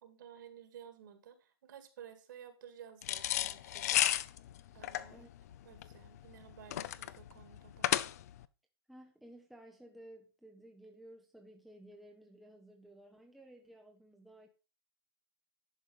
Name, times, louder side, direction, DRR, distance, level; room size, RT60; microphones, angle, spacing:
voice 1, 0.0-4.0 4.7-5.3 5.6-7.9, right 9 dB, 50° right, 2.1 m, -54 dB
sound 1, 3.0-8.4, left 12 dB, 40° left, 0.5 m, -33 dB
voice 2, 8.9-14.5, right 1 dB, ahead, 0.7 m, -55 dB
11.0 x 4.7 x 5.5 m
hypercardioid pair, 160°, 13 cm